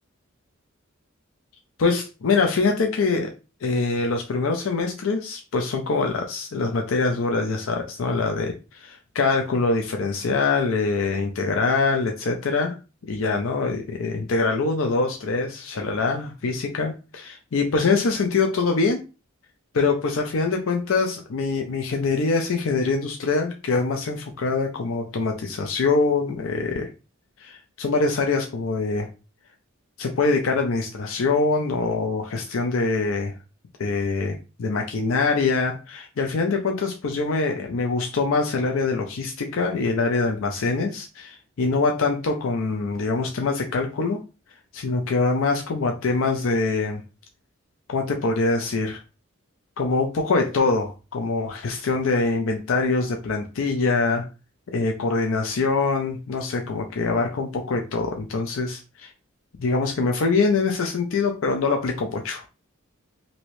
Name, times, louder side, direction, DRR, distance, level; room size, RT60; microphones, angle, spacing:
voice 1, 1.8-3.3 3.6-12.8 13.1-19.0 19.7-26.9 27.4-29.1 30.0-33.3 33.8-44.2 44.7-47.0 47.9-49.0 49.8-54.3 54.7-59.1 59.6-62.5, left 3 dB, 70° left, 3 dB, 0.5 m, -24 dB
3.0 x 2.7 x 3.0 m, 0.31 s
head